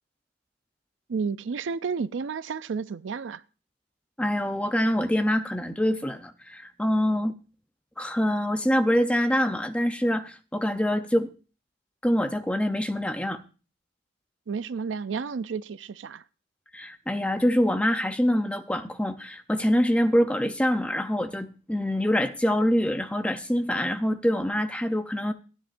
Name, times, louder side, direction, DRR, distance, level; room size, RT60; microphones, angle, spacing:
voice 1, 1.1-3.4 14.5-16.2, right 5 dB, 85° right, 0.4 m, -31 dB
voice 2, 4.2-7.3 8.0-11.3 12.0-13.4 16.7-25.3, equal, 5° left, 0.6 m, -25 dB
15.5 x 10.0 x 2.6 m
head